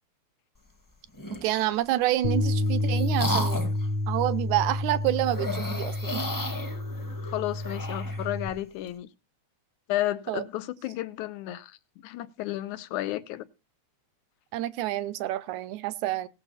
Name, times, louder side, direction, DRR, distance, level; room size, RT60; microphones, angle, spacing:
sound 1, 1.1-1.8 2.4-3.9 5.2-8.3, left 1 dB, 15° left, 0.7 m, -34 dB
voice 1, 1.4-3.6 4.1-6.2 10.3-10.4 14.5-16.3, right 14 dB, 80° right, 2.1 m, -28 dB
Bass guitar, 2.2-8.5, left 1 dB, 65° left, 1.5 m, -29 dB
voice 2, 7.2-9.1 9.9-13.4, left 15 dB, 85° left, 2.3 m, -32 dB
18.0 x 6.9 x 4.1 m
omnidirectional pair, 3.4 m